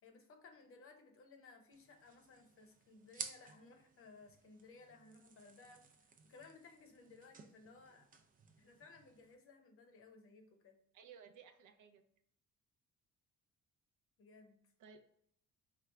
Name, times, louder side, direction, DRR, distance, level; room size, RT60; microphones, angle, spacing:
voice 1, 0.0-8.1 8.6-10.8 14.2-14.7, left 3 dB, 45° left, 5 dB, 0.7 m, -60 dB
sound 1, 1.7-9.3, right 5 dB, 25° right, 0.4 m, -55 dB
voice 2, 10.9-12.0 14.8-15.0, right 6 dB, 70° right, 6 dB, 0.6 m, -58 dB
4.4 x 2.4 x 3.2 m, 0.66 s
cardioid pair, 140°, 32 cm